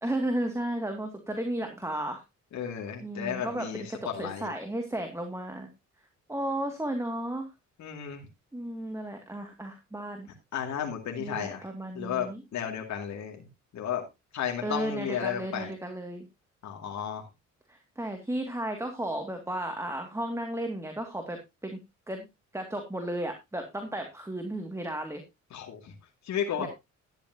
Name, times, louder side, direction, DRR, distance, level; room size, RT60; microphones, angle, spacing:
voice 1, 0.0-2.2 3.0-3.7 4.2-5.7 6.3-7.5 8.5-10.3 11.2-12.4 14.6-16.3 17.7-21.8 22.1-22.3 22.5-25.2 26.6-26.7, right 1 dB, 10° right, 4 dB, 2.2 m, -34 dB
voice 2, 2.5-4.5 7.8-8.2 10.5-13.5 13.7-14.0 14.3-15.7 16.6-17.3 25.5-25.9 26.2-26.7, left 8 dB, 65° left, 1 dB, 2.5 m, -33 dB
12.0 x 10.5 x 2.8 m, 0.23 s
cardioid pair, 90°, 30 cm